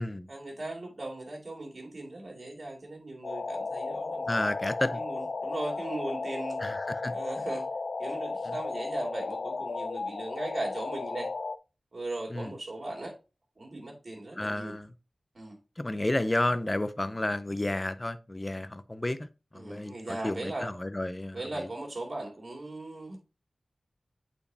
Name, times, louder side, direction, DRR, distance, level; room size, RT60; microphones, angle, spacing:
voice 1, 0.3-4.5 4.9-6.6 7.1-7.7 8.0-11.3 11.9-13.1 13.6-14.7 15.3-15.6 19.5-20.7 21.3-23.2, right 2 dB, 55° right, 2.5 m, -38 dB
sound 1, 3.2-11.6, left 3 dB, 80° left, 0.4 m, -34 dB
voice 2, 4.3-5.0 6.6-7.1 8.5-8.6 12.3-12.5 14.4-14.9 15.8-19.3 19.5-21.7, left 1 dB, 25° left, 0.6 m, -31 dB
8.6 x 4.3 x 2.7 m
wide cardioid pair, 60°, 0 cm